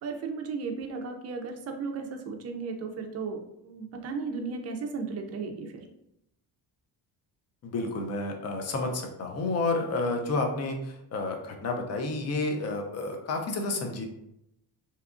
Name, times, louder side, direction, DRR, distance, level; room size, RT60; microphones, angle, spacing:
voice 1, 0.0-5.9, right 4 dB, 40° right, 4 dB, 0.4 m, -35 dB
voice 2, 7.6-14.1, left 2 dB, 40° left, 3 dB, 0.5 m, -30 dB
2.8 x 2.3 x 2.4 m, 0.80 s
cardioid pair, 140°, 40 cm